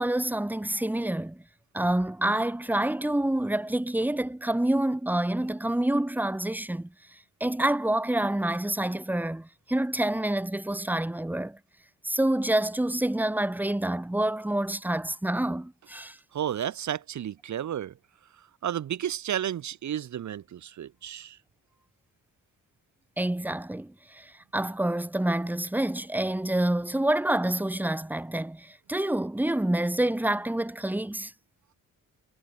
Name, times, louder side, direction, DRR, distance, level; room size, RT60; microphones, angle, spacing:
voice 1, 0.0-1.4 1.7-6.9 7.4-11.6 12.0-16.2 23.2-31.3, right 1 dB, 5° right, 1.6 m, -27 dB
voice 2, 16.3-17.9 18.6-21.4, right 10 dB, 55° right, 1.4 m, -32 dB
wide cardioid pair, 175°, 34 cm